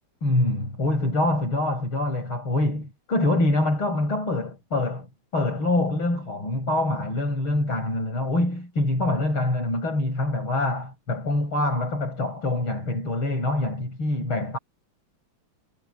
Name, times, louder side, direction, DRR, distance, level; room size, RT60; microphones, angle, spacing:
voice 1, 0.2-5.1 5.3-14.6, left 2 dB, 85° left, 8.5 m, -25 dB
omnidirectional pair, 2.2 m